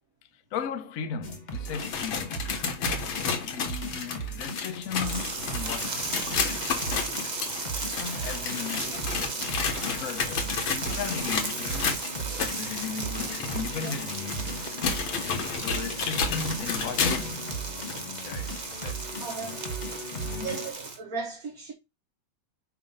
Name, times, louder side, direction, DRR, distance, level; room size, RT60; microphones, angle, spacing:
voice 1, 0.5-2.5 3.5-6.7 8.0-9.1 9.9-17.6 18.0-19.5 20.1-20.6, left 6 dB, 55° left, 1.1 m, -37 dB
sound 1, 1.2-20.7, right 2 dB, 35° left, 0.8 m, -38 dB
sound 2, 1.5-17.4 17.9-18.0 18.7-18.8 19.7-19.8, left 6 dB, 75° left, 2.0 m, -32 dB
sound 3, 5.0-21.0, right 3 dB, 30° right, 0.8 m, -36 dB
voice 2, 19.2-19.6 20.4-21.7, right 4 dB, 45° right, 1.6 m, -36 dB
7.1 x 2.8 x 5.4 m
omnidirectional pair, 2.3 m